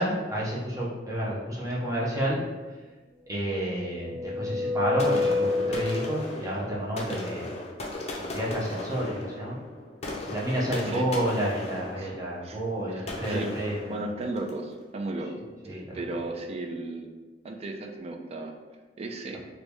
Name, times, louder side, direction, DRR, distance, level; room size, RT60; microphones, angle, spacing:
voice 1, 0.0-2.4 3.3-7.5 8.2-9.6 10.3-14.0 15.6-15.8, right 1 dB, 20° right, -6 dB, 0.7 m, -30 dB
sound 1, 3.4-6.5, left 3 dB, 65° right, 1.1 m, -29 dB
sound 2, 5.0-14.6, left 1 dB, 35° left, 0.5 m, -37 dB
voice 2, 12.9-13.5 13.9-15.4 15.7-17.1 17.4-18.5 19.0-19.4, right 2 dB, 35° right, 3 dB, 0.3 m, -35 dB
2.9 x 2.6 x 3.3 m, 1.3 s
head